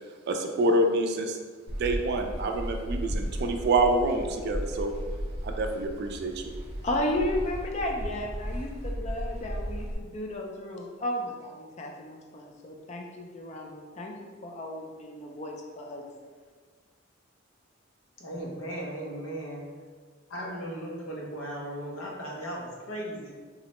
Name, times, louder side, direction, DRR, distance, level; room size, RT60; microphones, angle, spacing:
voice 1, 0.3-1.4 1.8-4.9 5.4-6.3, right 2 dB, 55° right, 4 dB, 0.3 m, -26 dB
sail pole, 1.7-9.9, equal, 30° right, 0.8 m, -35 dB
voice 2, 6.8-16.0, left 1 dB, 35° left, 1 dB, 0.4 m, -34 dB
voice 3, 18.2-19.6 20.3-23.3, right 1 dB, 75° left, -2 dB, 0.7 m, -37 dB
3.8 x 2.1 x 2.9 m, 1.5 s
head